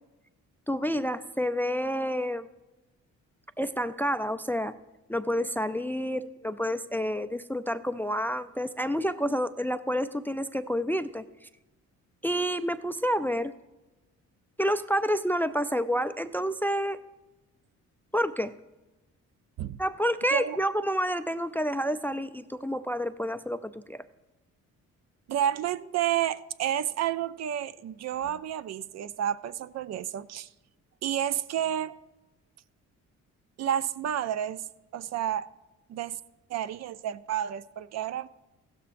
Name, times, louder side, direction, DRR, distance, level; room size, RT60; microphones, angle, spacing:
voice 1, 0.7-2.5 3.6-4.7 5.1-11.5 12.2-13.5 14.6-17.0 18.1-18.5 19.8-24.0, equal, 5° left, 0.3 m, -29 dB
voice 2, 25.3-30.5 31.0-32.0 33.6-34.6 34.9-35.5 35.9-36.2 36.5-38.3, right 10 dB, 60° right, 0.5 m, -30 dB
15.5 x 12.5 x 2.5 m
cardioid pair, 90°, 30 cm